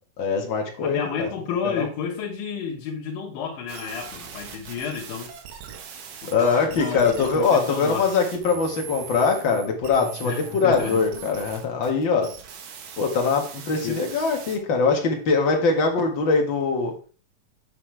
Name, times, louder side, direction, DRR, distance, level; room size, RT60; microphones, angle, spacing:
voice 1, 0.2-1.3 1.6-1.9 6.3-12.3 13.0-16.9, left 4 dB, 45° left, 2 dB, 1.8 m, -22 dB
voice 2, 0.8-5.3 6.2-8.1 10.2-11.0 13.8-14.1, left 6 dB, 80° left, -3 dB, 3.1 m, -31 dB
sound 1, 3.7-14.6, right 7 dB, 70° right, 2.9 m, -40 dB
8.4 x 7.7 x 3.4 m, 0.38 s
omnidirectional pair, 4.0 m